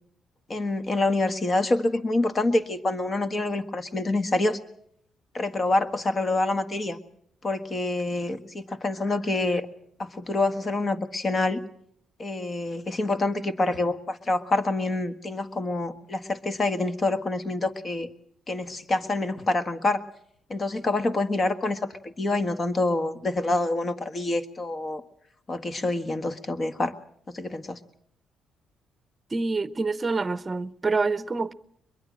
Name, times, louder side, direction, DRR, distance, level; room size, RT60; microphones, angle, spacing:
voice 1, 0.5-4.6 5.3-7.0 7.4-9.7 10.0-11.6 12.2-18.1 18.5-20.0 20.5-25.0 25.5-26.9 27.3-27.8, left 2 dB, 35° left, 1.6 m, -26 dB
voice 2, 29.3-31.5, right 3 dB, 25° right, 0.9 m, -26 dB
22.5 x 22.5 x 6.4 m
cardioid pair, 90°, 0 cm